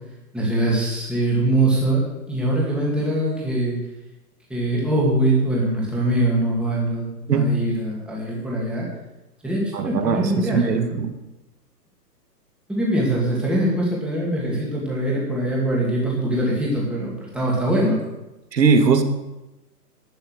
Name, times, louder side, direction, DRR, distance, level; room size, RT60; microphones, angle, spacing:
voice 1, 0.3-2.0 2.3-3.8 4.5-8.9 9.4-11.0 12.7-18.0, right 1 dB, ahead, -5 dB, 2.4 m, -22 dB
voice 2, 9.7-11.2 18.5-19.0, right 5 dB, 80° right, 7 dB, 2.0 m, -20 dB
12.0 x 8.6 x 6.5 m, 1.0 s
hypercardioid pair, 160°, 49 cm